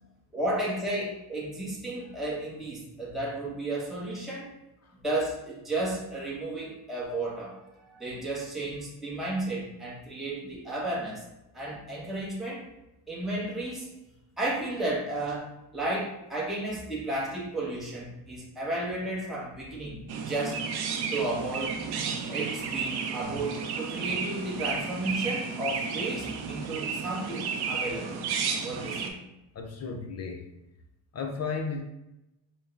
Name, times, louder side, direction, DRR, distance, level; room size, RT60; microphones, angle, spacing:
voice 1, 0.3-4.5 4.9-7.6 7.9-11.2 11.5-12.7 13.1-13.9 14.4-20.7 21.1-21.8 22.3-28.2 28.6-29.1, right 2 dB, ahead, -5 dB, 0.8 m, -33 dB
Chirp tweet, 20.1-29.1, right 5 dB, 55° right, 0.6 m, -32 dB
voice 2, 29.5-30.5 31.1-31.8, left 5 dB, 35° left, 3 dB, 0.5 m, -35 dB
5.3 x 2.2 x 2.3 m, 0.93 s
cardioid pair, 100°, 48 cm